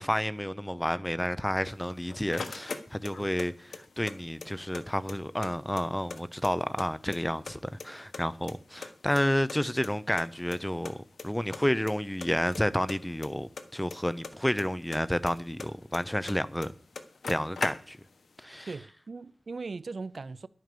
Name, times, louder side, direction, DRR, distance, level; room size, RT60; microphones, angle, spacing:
voice 1, 0.0-11.0 11.2-16.7 17.3-18.0 18.4-18.7, equal, 5° left, 0.7 m, -30 dB
sound 1, 1.7-3.5 3.7-4.8 5.1-5.2 5.4-6.9 7.1-7.9 8.1-9.6 9.8-9.9 10.2-10.3 10.5-10.6 10.8-11.3 11.5-11.9 12.2-14.6 14.9-16.4 16.6-16.7 16.9-18.2, left 4 dB, 90° left, 1.3 m, -39 dB
voice 2, 18.7-20.5, right 4 dB, 60° right, 0.5 m, -39 dB
11.0 x 9.4 x 6.8 m
wide cardioid pair, 105°, 0 cm